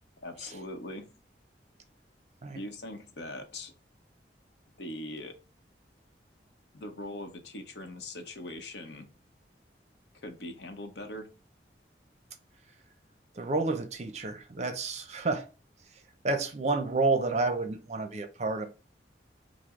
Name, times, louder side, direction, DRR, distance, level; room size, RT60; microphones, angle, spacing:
voice 1, 0.2-1.1 2.5-3.7 4.8-5.4 6.7-9.1 10.1-11.3, left 1 dB, 75° left, 0.8 m, -41 dB
voice 2, 13.4-15.4 16.2-18.7, right 3 dB, 40° right, 0.5 m, -29 dB
4.7 x 2.0 x 3.6 m
head